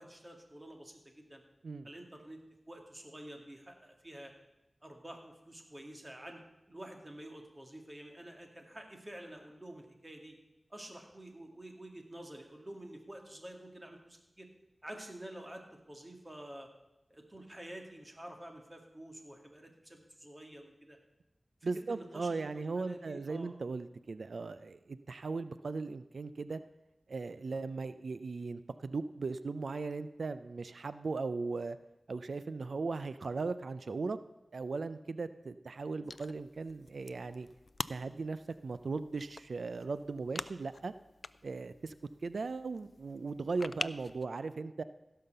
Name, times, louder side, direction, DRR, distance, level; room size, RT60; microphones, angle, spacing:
voice 1, 0.0-1.4 1.8-2.4 2.7-4.3 4.8-6.4 6.7-10.3 10.7-14.5 14.8-15.6 15.9-16.7 17.1-21.0 21.6-23.5, right 1 dB, 25° right, 2 dB, 2.3 m, -49 dB
voice 2, 21.6-26.6 27.1-31.8 32.1-34.2 34.5-37.5 37.9-40.9 41.4-41.9 42.2-44.8, right 4 dB, 85° right, 13 dB, 0.4 m, -38 dB
sound 1, 36.0-44.2, left 3 dB, 60° left, 0.3 m, -46 dB
16.0 x 5.7 x 6.7 m, 0.96 s
cardioid pair, 45°, 0 cm